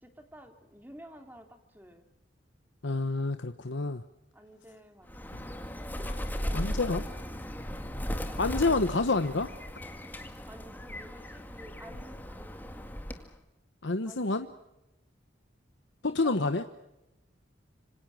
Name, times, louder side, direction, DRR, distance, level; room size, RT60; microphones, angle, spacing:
voice 1, 0.0-2.1 4.3-5.2 8.3-8.8 10.5-12.9 14.1-14.5 16.0-16.6, equal, 10° right, 6 dB, 2.7 m, -51 dB
voice 2, 2.8-4.0 6.5-7.0 8.4-9.5 13.8-14.5 16.1-16.6, left 3 dB, 70° left, 9 dB, 1.1 m, -28 dB
Bird, 5.1-13.4, equal, 10° left, 2.0 m, -37 dB
26.5 x 26.0 x 6.2 m, 0.93 s
head